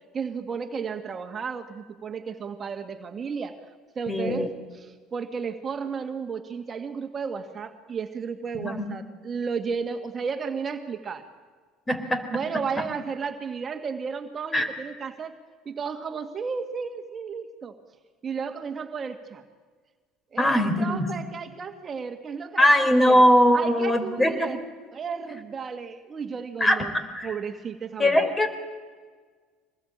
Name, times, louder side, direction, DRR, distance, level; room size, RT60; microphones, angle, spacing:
voice 1, 0.1-3.6 4.0-11.3 12.3-15.3 15.7-17.8 18.2-19.4 20.3-23.2 23.5-24.6 24.9-26.9 27.2-28.3, right 5 dB, 40° right, 6 dB, 1.9 m, -33 dB
voice 2, 4.1-4.5 8.5-8.9 11.9-12.2 14.5-14.7 20.4-21.1 22.6-24.5 26.6-26.8 27.1-27.3 28.0-28.5, equal, 20° left, 8 dB, 4.2 m, -21 dB
24.5 x 20.5 x 8.8 m, 1.5 s
hypercardioid pair, 65°, 0 cm